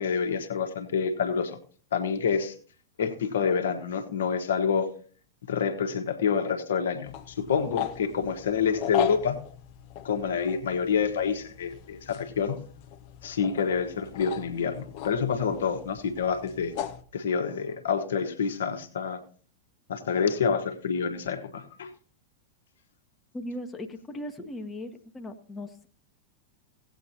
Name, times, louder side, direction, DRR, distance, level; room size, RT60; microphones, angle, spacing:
voice 1, 0.0-1.6 1.9-2.5 3.0-5.0 5.5-9.4 10.0-12.6 13.2-16.7 17.1-19.2 19.9-21.9, left 6 dB, 65° left, 5 dB, 1.3 m, -27 dB
sound 1, 7.0-17.0, left 10 dB, 45° left, 0.7 m, -38 dB
voice 2, 23.3-25.9, left 1 dB, 15° left, 5 dB, 1.1 m, -38 dB
17.5 x 8.4 x 2.8 m, 0.43 s
figure-of-eight pair, 90°, 0 cm